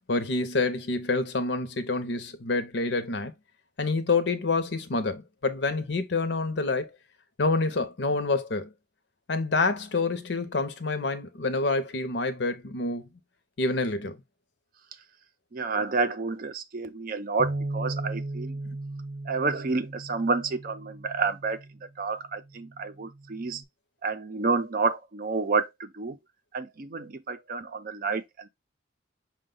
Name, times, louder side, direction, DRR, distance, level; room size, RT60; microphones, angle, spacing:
voice 1, 0.1-3.3 3.8-6.9 7.4-8.7 9.3-13.1 13.6-14.2, left 3 dB, 65° left, 0.7 m, -27 dB
voice 2, 15.5-18.6 19.3-21.6 22.0-23.6 24.0-26.2 26.5-28.5, right 4 dB, 45° right, 0.5 m, -29 dB
Bass guitar, 17.4-21.8 22.5-23.6, right 2 dB, 85° right, 0.8 m, -37 dB
6.1 x 2.2 x 3.7 m
head